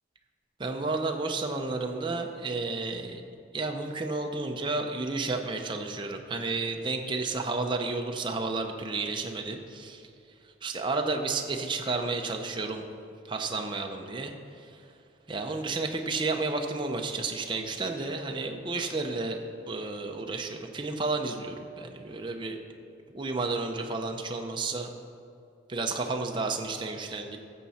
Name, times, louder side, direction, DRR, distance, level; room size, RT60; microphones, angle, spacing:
voice 1, 0.6-3.2 3.5-10.0 10.6-12.8 13.3-14.7 15.3-19.4 19.7-22.6 23.1-24.9 25.7-27.4, right 3 dB, 25° right, 3 dB, 0.6 m, -31 dB
13.5 x 7.4 x 4.2 m, 2.5 s
head